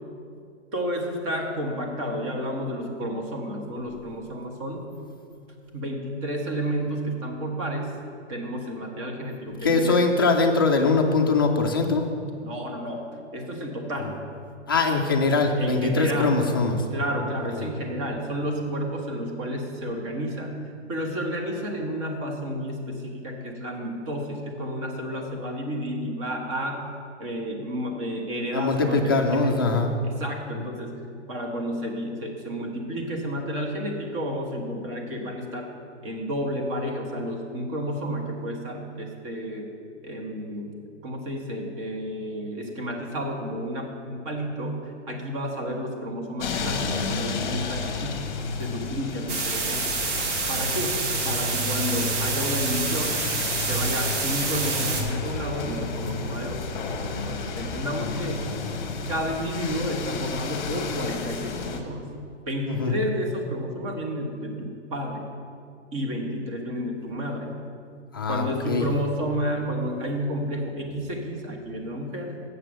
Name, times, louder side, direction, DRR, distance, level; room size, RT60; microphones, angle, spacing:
voice 1, 0.7-4.9 5.7-8.0 8.3-10.0 12.4-13.1 13.3-14.1 15.6-16.4 16.9-20.6 20.9-26.9 27.2-31.0 31.3-35.7 36.0-39.7 40.0-48.3 48.6-49.9 50.1-53.4 53.7-56.6 57.1-58.5 59.1-62.1 62.5-65.2 65.9-67.5 68.3-72.3, equal, 25° right, 1 dB, 1.3 m, -31 dB
voice 2, 9.6-12.0 14.0-14.1 14.7-16.8 17.6-17.7 28.5-29.9 62.7-62.9 68.1-68.9, left 3 dB, 20° left, 2 dB, 0.4 m, -22 dB
sound 1, 46.4-61.8, left 3 dB, 40° left, 1.0 m, -32 dB
sound 2, 49.3-55.0, right 3 dB, 80° right, 2.2 m, -27 dB
8.6 x 6.7 x 6.3 m, 2.4 s
hypercardioid pair, 165°, 35 cm